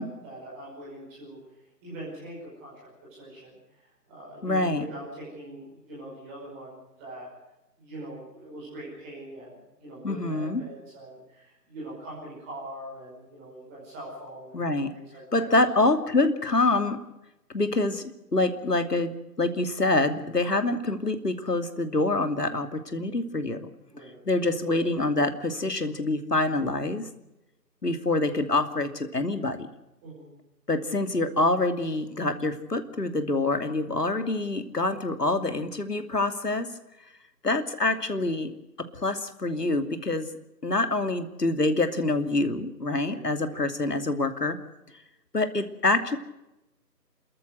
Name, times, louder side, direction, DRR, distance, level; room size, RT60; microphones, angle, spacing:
voice 1, 0.0-1.4 1.8-2.7 3.1-7.3 7.8-15.7 23.9-24.2 30.0-30.3 43.0-43.2 43.5-43.6, right 1 dB, 10° right, -6 dB, 5.2 m, -42 dB
voice 2, 4.4-4.8 10.0-10.6 14.5-14.9 15.3-17.0 17.5-19.1 19.4-23.7 24.3-27.1 27.8-29.7 30.7-36.7 37.4-38.5 38.9-40.3 40.6-44.6 45.3-46.2, left 2 dB, 70° left, 8 dB, 2.9 m, -26 dB
29.0 x 14.0 x 7.9 m, 0.93 s
figure-of-eight pair, 160°, 50 cm